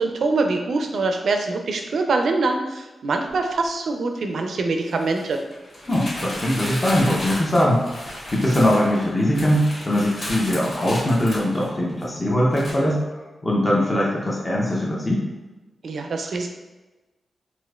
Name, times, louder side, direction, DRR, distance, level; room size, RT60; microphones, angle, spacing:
voice 1, 0.0-5.4 15.8-16.5, right 3 dB, 60° right, 4 dB, 0.4 m, -24 dB
sound 1, 3.3-3.4 4.9-12.1 12.5-12.7, left 1 dB, 60° left, 1.1 m, -34 dB
voice 2, 5.9-13.0 13.4-15.2, left 1 dB, 15° left, -4 dB, 0.5 m, -21 dB
4.2 x 2.4 x 2.3 m, 1.1 s
wide cardioid pair, 180°, 0 cm